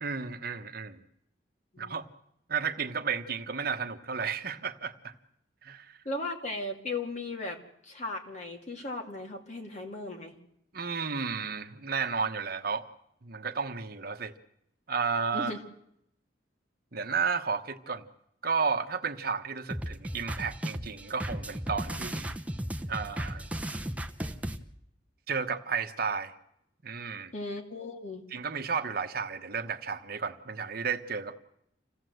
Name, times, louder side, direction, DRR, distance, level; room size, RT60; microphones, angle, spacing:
voice 1, 0.0-1.0 1.8-2.0 2.5-5.1 5.6-5.9 10.7-12.9 13.2-14.3 14.9-15.5 16.9-18.0 18.4-22.3 22.9-23.5 25.3-26.3 26.8-27.3 28.3-31.4, right 5 dB, 55° right, 7 dB, 1.2 m, -32 dB
voice 2, 6.0-10.3 15.3-15.6 27.3-28.2, left 2 dB, 40° left, 2 dB, 2.7 m, -37 dB
sound 1, 19.7-24.6, right 1 dB, 10° right, 0.9 m, -35 dB
27.0 x 16.5 x 7.9 m, 0.78 s
head